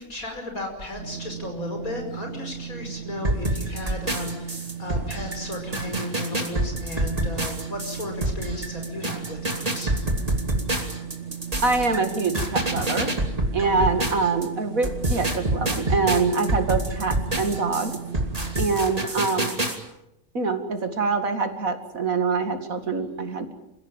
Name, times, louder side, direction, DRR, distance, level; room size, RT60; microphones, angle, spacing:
voice 1, 0.0-10.0 13.6-13.9, left 2 dB, 75° left, 3 dB, 6.0 m, -35 dB
sound 1, 1.0-18.7, right 8 dB, 55° right, 1.6 m, -37 dB
sound 2, 3.2-14.5 14.8-19.8, right 1 dB, 25° right, 3.0 m, -27 dB
voice 2, 11.6-13.1 13.5-18.0 18.6-19.5 20.3-23.5, right 4 dB, 70° right, 8 dB, 2.7 m, -25 dB
28.0 x 16.5 x 9.0 m, 0.86 s
omnidirectional pair, 1.5 m